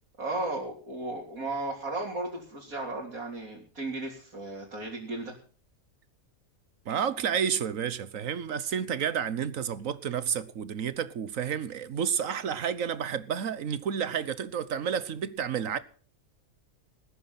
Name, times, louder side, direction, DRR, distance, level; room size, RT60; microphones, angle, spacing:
voice 1, 0.2-5.3, right 2 dB, 85° right, 3.9 m, -35 dB
voice 2, 6.8-15.8, right 8 dB, 70° right, 1.4 m, -30 dB
19.5 x 10.0 x 5.8 m
omnidirectional pair, 1.4 m